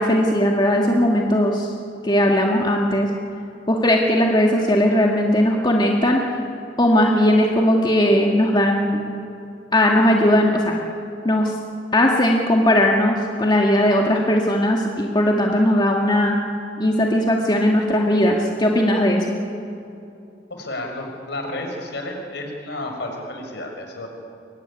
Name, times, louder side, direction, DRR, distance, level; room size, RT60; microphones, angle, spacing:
voice 1, 0.0-1.7 2.0-3.1 3.7-6.2 6.8-9.0 9.7-10.7 11.2-11.5 11.9-16.4 16.8-19.4, left 1 dB, 25° left, 0 dB, 1.9 m, -18 dB
voice 2, 20.5-24.1, left 1 dB, 65° left, 3 dB, 5.6 m, -31 dB
23.0 x 23.0 x 9.9 m, 2.7 s
head